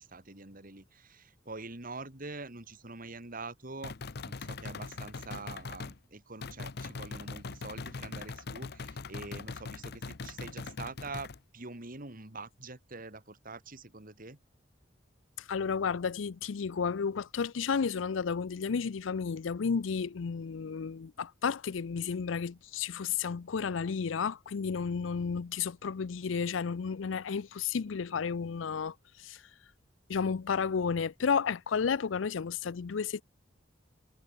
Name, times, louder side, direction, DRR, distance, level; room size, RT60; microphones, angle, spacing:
voice 1, 0.0-14.4, right 3 dB, 50° right, 3.0 m, -45 dB
sound 1, 3.8-6.0 6.4-11.4, left 4 dB, 55° left, 0.8 m, -41 dB
voice 2, 15.4-29.4 30.1-33.2, left 6 dB, 90° left, 0.5 m, -32 dB
head